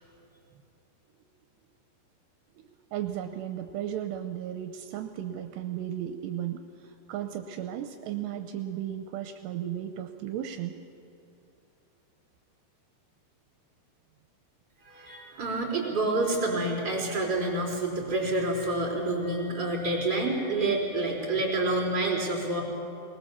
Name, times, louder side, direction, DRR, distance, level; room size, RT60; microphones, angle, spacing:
voice 1, 2.6-10.7, right 10 dB, 80° right, 6 dB, 2.8 m, -35 dB
voice 2, 14.8-22.6, right 2 dB, 25° right, -1 dB, 4.4 m, -28 dB
21.5 x 19.5 x 7.1 m, 2.8 s
omnidirectional pair, 5.0 m